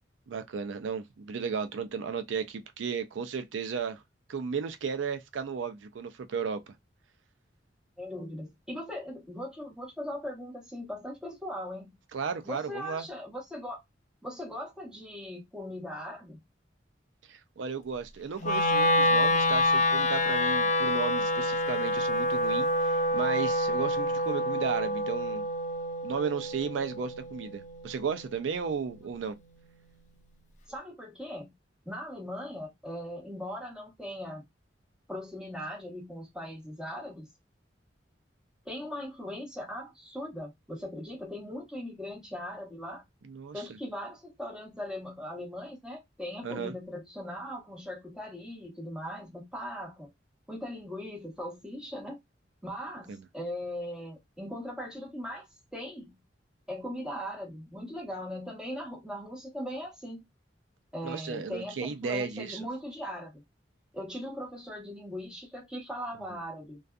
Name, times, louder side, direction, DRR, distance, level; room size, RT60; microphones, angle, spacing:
voice 1, 0.3-4.0 4.3-6.6 12.1-13.1 17.3-25.4 26.0-29.4 43.2-43.6 46.4-46.7 53.1-53.3 61.0-62.6, right 6 dB, 85° right, 0.4 m, -34 dB
voice 2, 8.0-12.0 12.4-13.8 14.2-16.4 30.7-31.5 31.8-34.4 35.1-37.3 38.6-43.0 43.5-50.1 50.5-52.2 52.6-56.2 56.7-60.2 60.9-63.4 63.9-66.8, equal, 5° right, 1.0 m, -39 dB
Wind instrument woodwind instrument, 18.4-28.6, left 1 dB, 40° left, 0.4 m, -27 dB
2.5 x 2.3 x 2.2 m
head